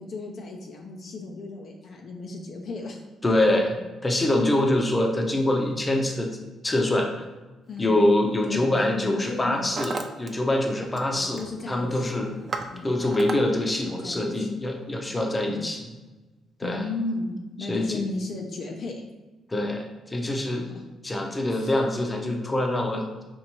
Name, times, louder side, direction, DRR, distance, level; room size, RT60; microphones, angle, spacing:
voice 1, 0.0-3.0 7.7-8.0 8.4-9.9 11.1-12.4 12.7-12.9 13.8-14.5 15.5-15.7 16.6-19.1 20.6-20.9 21.4-21.8, left 3 dB, 60° left, 2 dB, 0.5 m, -35 dB
voice 2, 3.2-3.8 4.0-6.3 6.6-7.3 7.8-11.4 11.7-12.3 12.8-15.8 16.6-16.8 17.7-18.0 19.5-20.6 21.0-23.2, left 1 dB, 20° left, 2 dB, 0.6 m, -24 dB
Hammer, 7.8-8.0 8.8-9.1 9.3-10.3 10.6-11.1 11.4-11.7 12.1-13.4, right 4 dB, 40° right, 0.4 m, -35 dB
4.4 x 2.5 x 2.9 m, 1.2 s
cardioid pair, 90°, 0 cm